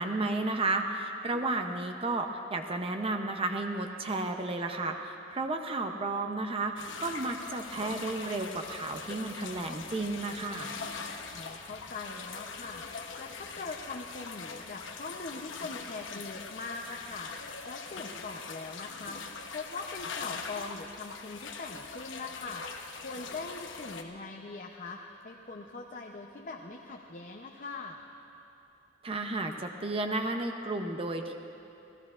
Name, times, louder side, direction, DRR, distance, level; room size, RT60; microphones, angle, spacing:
voice 1, 0.0-10.7 29.0-31.3, right 2 dB, 30° right, 4 dB, 0.6 m, -32 dB
sound 1, 6.8-24.0, left 5 dB, 85° left, 0.9 m, -42 dB
voice 2, 11.2-12.8 13.2-17.3 17.7-22.6 23.0-28.0, left 3 dB, 45° left, 1 dB, 0.7 m, -42 dB
27.5 x 16.0 x 2.5 m, 2.8 s
head